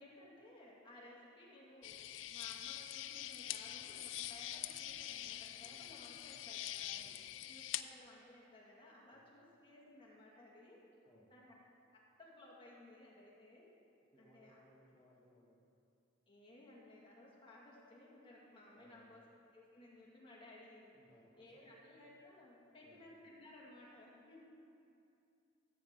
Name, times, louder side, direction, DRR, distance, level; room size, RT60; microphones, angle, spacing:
voice 1, 0.0-6.9 7.5-10.9 11.3-11.5 11.9-13.7 14.2-14.6 16.3-19.3 19.5-20.9 21.4-24.6, left 1 dB, 25° left, -4 dB, 2.0 m, -59 dB
sound 1, 1.8-7.8, left 13 dB, 85° left, 0.4 m, -45 dB
sound 2, 3.1-11.1, left 1 dB, 55° left, 1.9 m, -71 dB
voice 2, 5.6-5.9 6.9-7.4 9.1-9.2 11.0-11.3 14.1-15.6 18.7-19.2 20.4-20.5 20.9-21.8 22.8-23.1, left 1 dB, 10° left, -8 dB, 1.2 m, -67 dB
14.5 x 8.7 x 3.7 m, 2.6 s
head